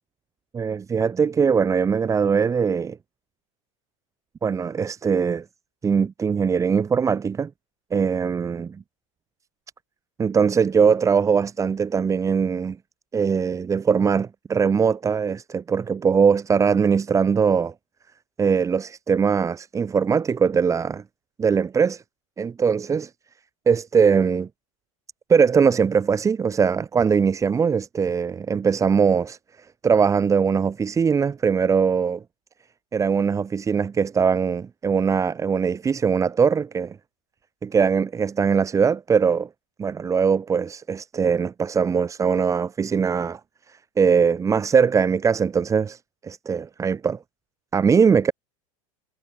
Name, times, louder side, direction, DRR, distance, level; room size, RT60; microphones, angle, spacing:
voice 1, 0.5-3.0 4.4-5.4 5.8-7.5 7.9-8.8 10.2-12.8 13.1-17.7 18.4-21.0 21.4-22.0 22.4-23.1 23.7-24.5 25.3-29.4 29.8-32.2 32.9-37.0 37.6-39.5 39.8-43.4 44.0-47.2 47.7-48.3, right 6 dB, 20° right, 0.6 m, -21 dB
hypercardioid pair, 95°, 18 cm